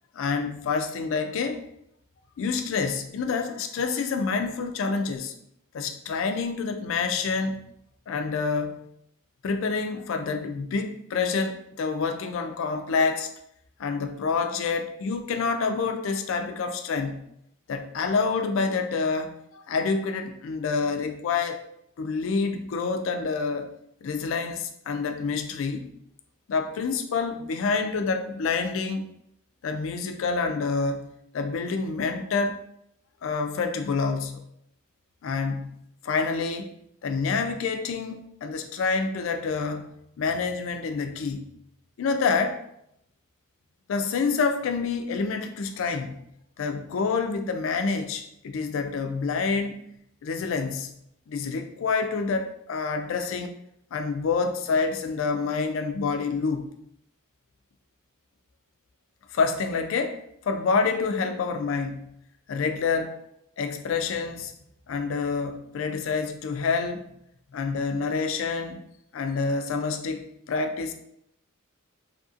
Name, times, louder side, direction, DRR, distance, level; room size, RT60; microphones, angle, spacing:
voice 1, 0.1-1.6 2.4-5.3 5.7-7.6 8.1-8.8 9.4-13.3 13.8-17.2 17.7-21.6 22.0-23.7 24.0-25.9 26.5-29.0 29.6-31.1 31.3-32.6 33.2-34.4 35.2-35.7 36.0-36.7 37.0-39.9 40.2-41.5 42.0-42.6 43.9-46.1 46.6-49.8 50.2-50.9 51.3-53.5 53.9-56.7 59.3-62.1 62.5-63.2 63.6-64.5 64.9-67.1 67.5-68.8 69.1-70.9, left 4 dB, 65° left, 7 dB, 0.3 m, -27 dB
2.8 x 2.4 x 2.6 m, 0.75 s
head